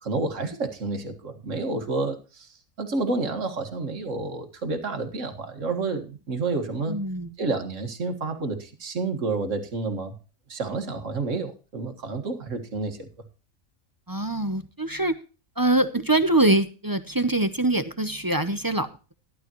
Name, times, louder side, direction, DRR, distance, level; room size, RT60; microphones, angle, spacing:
voice 1, 0.0-2.5 2.8-7.0 7.4-10.2 10.5-13.1, right 3 dB, 65° right, 6 dB, 2.1 m, -29 dB
voice 2, 6.9-7.3 14.1-15.1 15.6-19.1, right 2 dB, 20° right, 11 dB, 0.7 m, -24 dB
13.5 x 12.0 x 3.0 m, 0.34 s
omnidirectional pair, 1.4 m